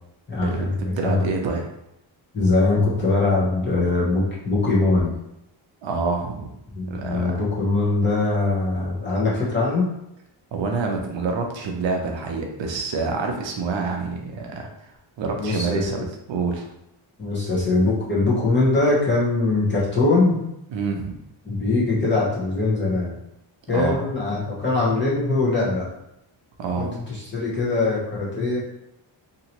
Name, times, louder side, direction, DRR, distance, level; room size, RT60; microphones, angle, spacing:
voice 1, 0.3-1.2 2.3-5.1 6.8-9.9 15.4-15.8 17.2-20.4 21.4-23.2 23.7-25.9 26.8-28.6, left 3 dB, 25° left, -7 dB, 0.9 m, -22 dB
voice 2, 1.0-1.7 5.8-6.5 6.9-7.4 10.5-14.9 15.2-16.0 16.3-16.7 20.7-21.2 23.7-24.0 26.6-26.9, right 4 dB, 65° right, 2 dB, 0.6 m, -27 dB
2.8 x 2.6 x 2.9 m, 0.82 s
wide cardioid pair, 180°, 48 cm